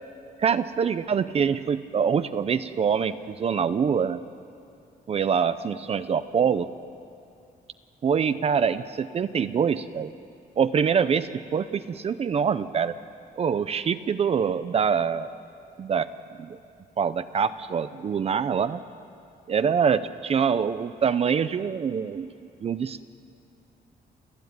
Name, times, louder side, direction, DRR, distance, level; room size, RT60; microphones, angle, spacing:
voice 1, 0.4-4.2 5.1-6.7 8.0-10.1 10.6-13.0 13.4-15.3 15.8-16.1 16.4-16.6 17.0-18.8 19.5-22.3 22.6-23.0, right 7 dB, 40° right, 12 dB, 0.5 m, -25 dB
29.0 x 14.0 x 9.5 m, 2.5 s
wide cardioid pair, 175°, 17 cm